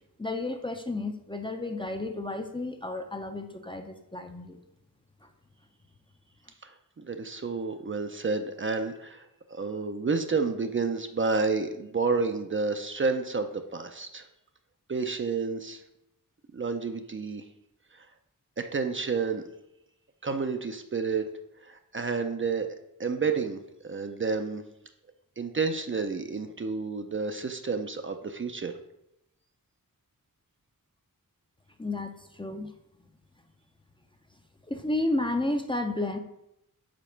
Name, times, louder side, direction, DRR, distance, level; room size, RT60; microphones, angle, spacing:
voice 1, 0.2-4.6 5.2-5.3 31.8-32.7 34.7-36.2, left 2 dB, 15° left, 5 dB, 0.5 m, -32 dB
voice 2, 6.6-14.3 14.9-15.8 16.5-17.4 17.9-18.1 18.6-19.4 20.2-21.2 21.6-22.7 23.0-24.6 25.4-28.8, right 4 dB, 35° right, 7 dB, 0.5 m, -30 dB
5.1 x 4.1 x 5.7 m, 0.84 s
wide cardioid pair, 100°, 35 cm